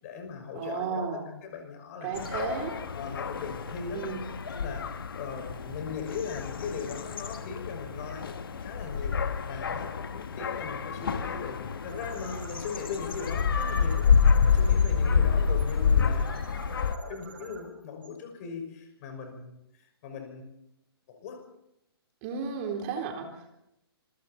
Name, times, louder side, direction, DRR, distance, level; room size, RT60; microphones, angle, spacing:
voice 1, 0.0-1.1 1.4-2.3 2.9-4.0 4.5-9.2 9.5-19.5 19.8-20.5 21.1-21.4, left 5 dB, 35° left, 5 dB, 6.0 m, -39 dB
voice 2, 0.6-1.3 2.0-2.7 3.9-4.2 22.2-23.5, right 5 dB, 30° right, 3 dB, 3.9 m, -33 dB
sound 1, 2.1-17.0, left 6 dB, 60° left, 1.6 m, -28 dB
sound 2, 11.9-18.8, right 4 dB, 55° right, 6.4 m, -49 dB
26.5 x 24.0 x 4.3 m, 0.82 s
figure-of-eight pair, 125°, 13 cm